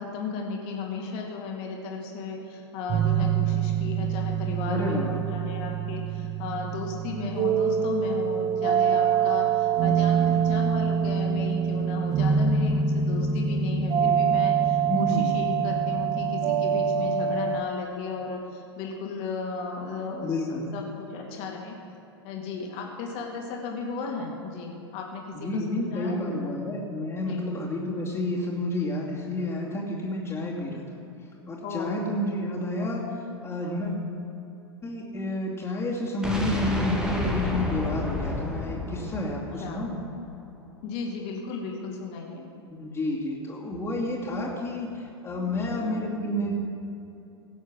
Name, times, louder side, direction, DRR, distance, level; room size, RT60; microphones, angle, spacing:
voice 1, 0.0-21.7 22.2-25.2 25.5-26.5 27.2-27.5 31.6-31.9 33.6-33.8 39.6-39.9 40.8-42.4 45.4-45.8, left 4 dB, 45° left, 0 dB, 2.4 m, -35 dB
sound 1, 2.9-17.6, right 7 dB, 30° right, 0.9 m, -25 dB
voice 2, 4.7-5.2 14.9-15.4 20.2-20.6 25.3-30.8 31.5-33.0 33.4-34.0 34.8-40.0 42.7-46.6, left 1 dB, 20° left, -6 dB, 2.6 m, -30 dB
sound 2, 36.2-40.2, left 1 dB, 5° right, 1.6 m, -30 dB
17.0 x 7.2 x 6.2 m, 2.7 s
figure-of-eight pair, 90°, 14 cm